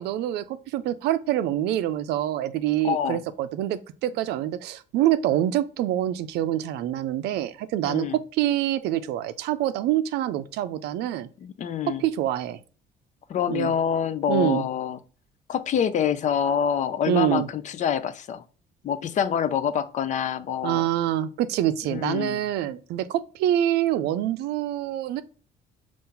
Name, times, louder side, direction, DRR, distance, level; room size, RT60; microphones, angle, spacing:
voice 1, 0.0-8.1 8.3-11.3 12.0-12.6 13.5-13.7 14.3-14.6 17.1-17.5 20.6-25.2, right 12 dB, 80° right, 0.4 m, -26 dB
voice 2, 2.8-3.2 7.9-8.2 11.4-12.0 13.3-15.0 15.5-18.4 18.8-20.9 21.9-22.4, left 8 dB, 45° left, 0.5 m, -26 dB
5.5 x 2.5 x 3.7 m
cardioid pair, 110°, 17 cm